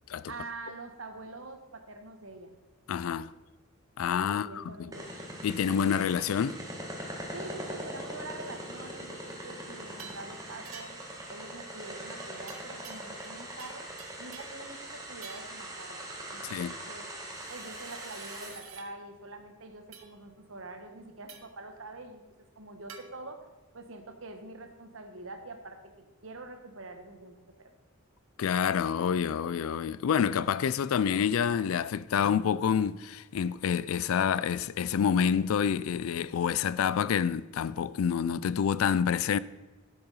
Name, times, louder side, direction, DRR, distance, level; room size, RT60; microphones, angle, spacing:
voice 1, 0.3-2.5 4.2-5.0 7.3-11.0 11.3-13.9 14.2-16.0 16.3-17.1 17.5-22.2 22.5-23.4 23.7-27.7, right 2 dB, 70° right, 1.3 m, -45 dB
voice 2, 2.9-3.3 4.0-4.9 5.4-6.6 16.4-16.7 28.4-39.4, left 7 dB, 85° left, 0.4 m, -28 dB
sound 1, 4.9-18.5, right 1 dB, 15° right, 1.7 m, -41 dB
sound 2, 10.0-10.3 10.7-11.1 12.5-13.3 13.6-14.6 15.2-15.6 17.3-18.9 19.9-20.1 21.3-21.6 22.9-23.1, right 7 dB, 90° right, 1.2 m, -49 dB
10.5 x 7.0 x 5.5 m
head